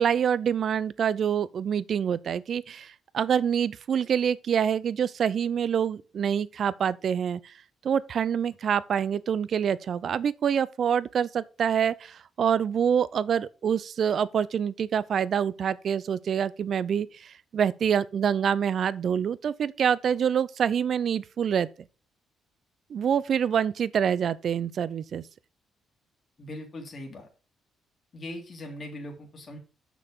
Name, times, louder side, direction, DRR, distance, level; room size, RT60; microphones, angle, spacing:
voice 1, 0.0-7.4 7.8-21.7 22.9-25.2, right 8 dB, 60° right, 0.5 m, -26 dB
voice 2, 26.4-27.3 28.1-29.6, left 1 dB, 45° left, 2.5 m, -40 dB
6.7 x 6.1 x 5.0 m
cardioid pair, 90°, 0 cm